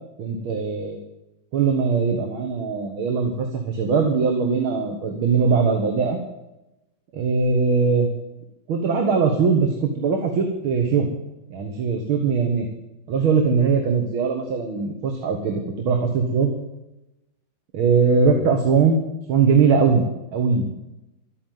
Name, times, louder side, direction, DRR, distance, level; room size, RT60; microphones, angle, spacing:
voice 1, 0.2-1.0 1.5-6.2 7.2-8.1 8.7-11.1 11.5-12.7 13.1-16.5 17.7-19.0 19.3-20.1 20.3-20.7, right 5 dB, 75° right, 4 dB, 2.2 m, -20 dB
12.5 x 9.4 x 9.2 m, 0.94 s
omnidirectional pair, 2.3 m